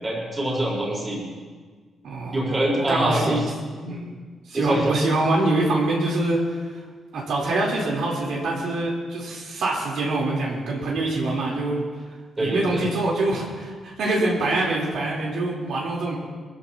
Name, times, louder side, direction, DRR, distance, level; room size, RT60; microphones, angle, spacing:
voice 1, 0.0-1.2 2.3-3.4 3.8-4.0 4.5-4.9 12.4-12.8, right 1 dB, 20° right, -4 dB, 4.6 m, -25 dB
voice 2, 2.0-3.4 3.9-4.1 4.5-6.6 7.1-11.8 12.4-16.2, right 2 dB, 70° right, -4 dB, 3.9 m, -25 dB
23.5 x 15.0 x 3.0 m, 1.5 s
wide cardioid pair, 180°, 0 cm